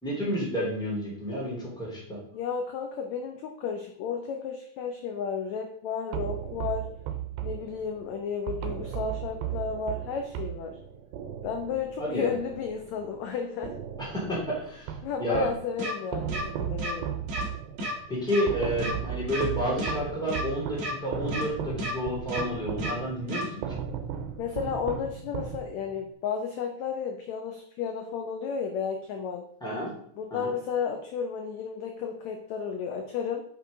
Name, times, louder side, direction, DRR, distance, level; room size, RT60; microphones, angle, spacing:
voice 1, 0.0-2.2 12.0-12.3 14.0-14.9 15.2-15.5 18.1-23.6 29.6-29.9 30.3-30.5, equal, ahead, -5 dB, 2.8 m, -30 dB
voice 2, 2.3-6.9 7.4-10.8 11.4-13.8 15.0-17.1 24.4-29.5 30.2-33.4, left 6 dB, 85° left, 4 dB, 1.5 m, -33 dB
sound 1, 6.1-13.3 13.6-15.7 16.1-26.0, right 9 dB, 90° right, 2.6 m, -36 dB
sound 2, 15.8-15.9 16.3-16.4 16.8-16.9 17.3-17.4 17.8-17.9 18.3-18.4 18.8-18.9 19.3-19.4 19.8-19.9 20.3-20.4 20.8-20.9 21.3-21.4 21.8-21.9 22.3-22.4 22.8-22.9 23.3-23.4, equal, 50° right, 2.4 m, -32 dB
6.4 x 6.0 x 5.2 m, 0.66 s
omnidirectional pair, 4.1 m